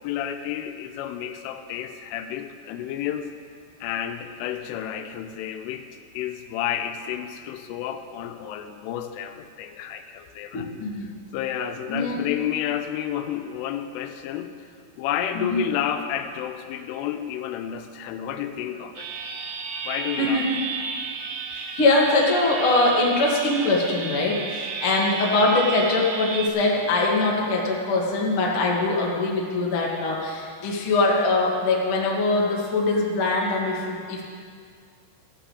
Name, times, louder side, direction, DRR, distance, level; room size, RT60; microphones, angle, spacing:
voice 1, 0.0-3.3 3.8-5.9 6.1-10.7 11.3-14.5 15.0-19.1 19.8-20.4, left 10 dB, 90° left, 8 dB, 3.2 m, -30 dB
voice 2, 10.5-11.1 11.9-12.3 15.3-15.6 20.2-20.6 21.5-34.2, left 2 dB, 70° left, -3 dB, 1.2 m, -22 dB
sound 1, 19.0-26.5, right 5 dB, 80° right, 3.4 m, -33 dB
15.0 x 6.4 x 8.2 m, 2.1 s
omnidirectional pair, 5.6 m